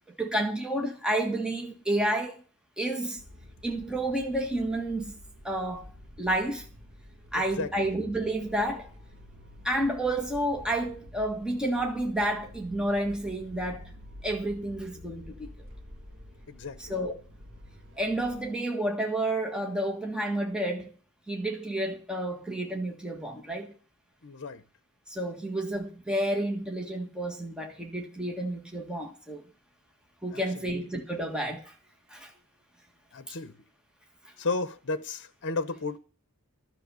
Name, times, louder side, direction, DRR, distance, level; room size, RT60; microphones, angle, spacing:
voice 1, 0.2-2.4 2.8-3.2 3.6-5.1 5.4-5.9 6.2-6.7 7.3-8.9 9.6-13.9 14.2-15.5 16.8-17.1 18.0-20.9 21.3-23.7 25.1-29.4 30.2-31.7 32.1-32.3 33.3-33.4, right 1 dB, 5° right, 1.6 m, -30 dB
sound 1, 3.2-18.5, left 1 dB, 60° right, 2.2 m, -49 dB
voice 2, 7.4-7.7 16.5-16.9 24.2-24.6 30.3-30.7 33.1-33.6 34.4-36.0, left 3 dB, 55° left, 0.9 m, -33 dB
12.5 x 6.8 x 7.0 m
head